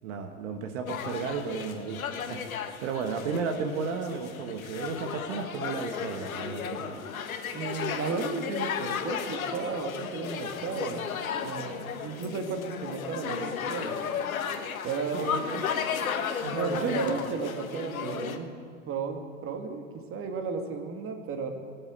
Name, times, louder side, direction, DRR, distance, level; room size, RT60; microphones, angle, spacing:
voice 1, 0.0-2.0 2.3-2.5 2.8-7.1 15.1-15.6 16.4-17.2, right 5 dB, 65° right, 5 dB, 1.5 m, -33 dB
sound 1, 0.9-18.4, left 7 dB, 85° left, 1.3 m, -34 dB
voice 2, 7.5-11.1 11.3-14.0 14.8-15.3 16.5-18.5 18.9-19.8 20.1-21.5, right 5 dB, 30° right, 5 dB, 2.0 m, -34 dB
19.5 x 8.2 x 8.2 m, 2.1 s
hypercardioid pair, 105°, 41 cm